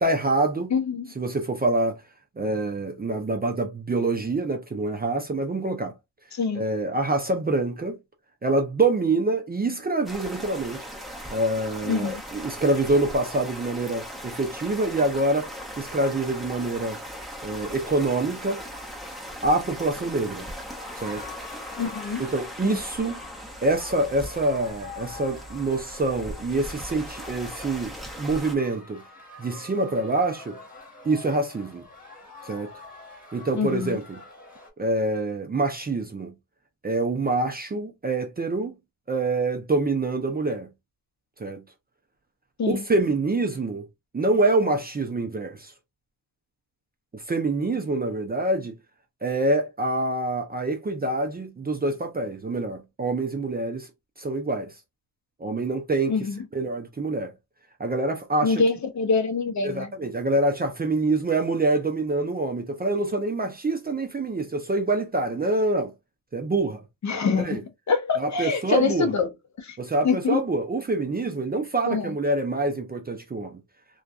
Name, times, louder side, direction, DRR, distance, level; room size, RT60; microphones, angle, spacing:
voice 1, 0.0-0.7 1.2-2.0 2.4-5.9 6.5-8.0 8.4-10.9 11.3-15.5 15.8-17.0 17.4-18.6 19.4-20.5 21.0-21.2 22.2-23.2 23.6-29.0 29.4-30.6 31.0-31.8 32.4-32.7 33.3-34.2 34.8-36.3 36.8-38.8 39.1-40.7 41.4-41.6 42.7-43.8 44.1-45.7 47.1-48.8 49.2-53.9 54.2-54.7 55.4-56.2 56.5-57.3 57.8-58.6 59.6-65.9 66.3-66.8 67.3-67.6 68.2-69.1 69.8-73.6, right 2 dB, 20° right, 0.5 m, -26 dB
voice 2, 0.7-1.1 6.3-6.6 11.9-12.2 21.8-22.2 22.6-22.8 33.5-34.0 42.6-42.8 56.1-56.4 58.4-59.9 67.0-67.6 67.9-69.3 69.6-69.8 70.0-70.4 71.9-72.1, left 5 dB, 40° left, 0.6 m, -25 dB
sound 1, 10.0-28.5, equal, ahead, 0.8 m, -39 dB
sound 2, 15.9-34.7, left 3 dB, 20° left, 1.4 m, -46 dB
2.5 x 2.3 x 2.3 m
cardioid pair, 75°, 46 cm